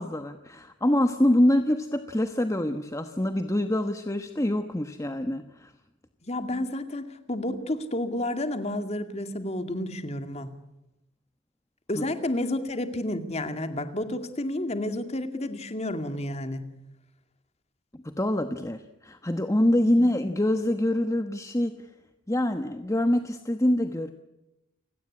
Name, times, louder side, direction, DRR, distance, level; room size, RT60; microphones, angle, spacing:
voice 1, 0.0-5.7 11.9-12.0 17.9-21.9 22.3-24.1, left 1 dB, 15° left, 8 dB, 1.1 m, -25 dB
voice 2, 6.2-10.6 11.9-16.7 19.8-19.9, left 1 dB, 30° left, 8 dB, 2.3 m, -31 dB
29.5 x 17.5 x 9.8 m, 0.92 s
head